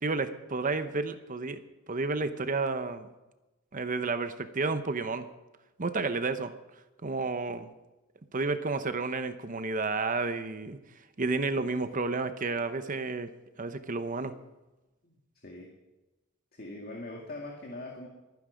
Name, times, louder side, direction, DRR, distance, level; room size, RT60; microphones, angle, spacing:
voice 1, 0.0-1.6 1.9-3.1 3.7-5.3 5.8-6.5 7.0-7.7 8.3-10.8 11.2-13.3 13.6-14.3, right 3 dB, 40° right, 10 dB, 0.8 m, -31 dB
voice 2, 15.0-15.7 16.5-18.1, left 2 dB, 50° left, 0 dB, 2.0 m, -42 dB
23.5 x 9.6 x 5.1 m, 1.1 s
head